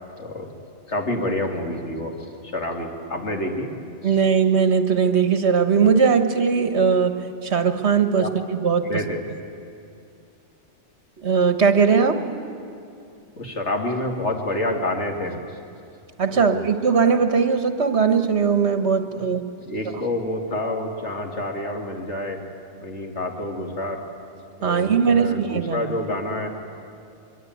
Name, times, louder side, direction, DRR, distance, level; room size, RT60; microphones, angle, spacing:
voice 1, 0.2-0.5 0.9-3.7 4.0-4.2 8.2-8.3 8.8-9.3 13.4-15.4 16.3-16.6 19.6-22.4 22.8-24.0 24.6-26.5, left 1 dB, 75° left, 2 dB, 2.9 m, -28 dB
voice 2, 4.0-8.9 11.2-12.3 16.2-19.5 24.6-25.9, right 6 dB, 70° right, 8 dB, 1.7 m, -19 dB
24.0 x 23.0 x 9.4 m, 2.5 s
omnidirectional pair, 1.2 m